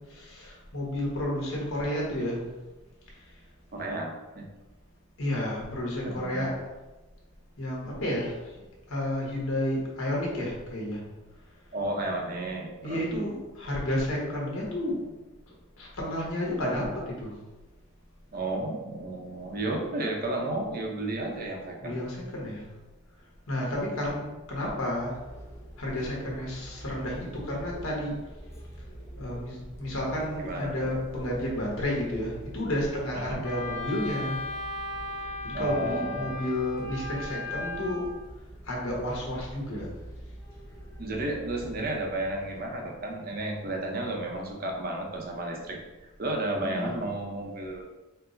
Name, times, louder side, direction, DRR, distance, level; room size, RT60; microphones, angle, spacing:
voice 1, 0.0-2.4 5.2-6.6 7.6-8.3 8.9-11.0 12.8-15.0 15.8-17.3 21.8-22.6 23.5-24.2 24.5-25.1 25.8-28.2 29.2-34.4 35.4-38.1 38.6-39.9 46.7-47.0, left 1 dB, 75° left, -3 dB, 1.2 m, -31 dB
voice 2, 3.7-4.5 6.0-6.5 11.7-13.0 18.3-22.0 30.4-30.7 33.1-33.4 35.5-36.3 41.0-47.8, right 1 dB, 45° right, 1 dB, 0.6 m, -32 dB
sound 1, 24.6-42.8, equal, 10° left, 0.5 m, -46 dB
Wind instrument woodwind instrument, 33.4-38.1, left 2 dB, 90° left, 0.6 m, -37 dB
4.5 x 2.0 x 3.9 m, 1.1 s
head